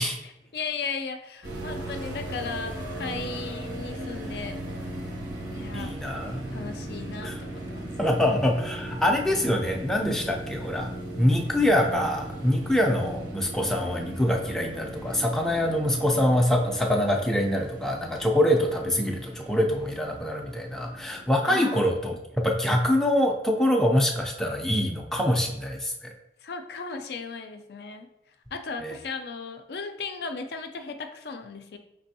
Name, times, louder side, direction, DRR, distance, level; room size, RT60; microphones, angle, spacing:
voice 1, 0.2-4.6 5.5-6.0 6.5-8.0 21.5-21.9 26.4-28.1 28.5-31.8, left 4 dB, 60° left, 6 dB, 0.4 m, -36 dB
sound 1, 1.4-21.4, right 1 dB, 80° right, 1.6 m, -38 dB
voice 2, 5.7-6.6 7.2-7.4 8.0-26.1 28.8-28.9, left 1 dB, 5° left, 0 dB, 0.4 m, -25 dB
5.2 x 3.3 x 2.7 m, 0.86 s
head